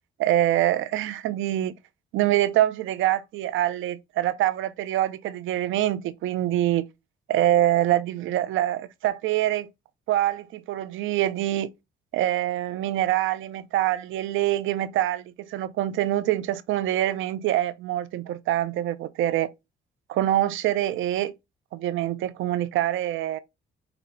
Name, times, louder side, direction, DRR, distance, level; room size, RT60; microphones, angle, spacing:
voice 1, 0.2-1.8 2.1-6.8 7.3-9.7 10.1-11.7 12.1-19.5 20.1-21.3 21.7-23.4, right 13 dB, 80° right, 0.5 m, -25 dB
5.9 x 2.7 x 2.6 m
cardioid pair, 90°, 20 cm